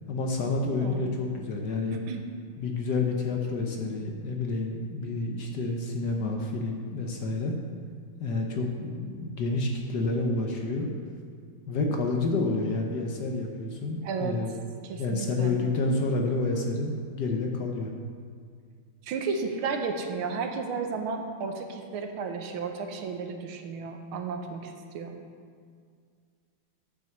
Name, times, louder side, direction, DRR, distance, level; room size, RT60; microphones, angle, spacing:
voice 1, 0.1-2.0 2.6-7.6 8.2-10.9 11.7-14.5 15.0-17.9, left 3 dB, 60° left, 2 dB, 1.2 m, -29 dB
voice 2, 0.8-1.2 2.1-2.2 14.0-14.4 14.8-15.5 19.0-25.1, right 5 dB, 80° right, 4 dB, 1.7 m, -33 dB
9.0 x 6.1 x 6.6 m, 2.1 s
omnidirectional pair, 2.4 m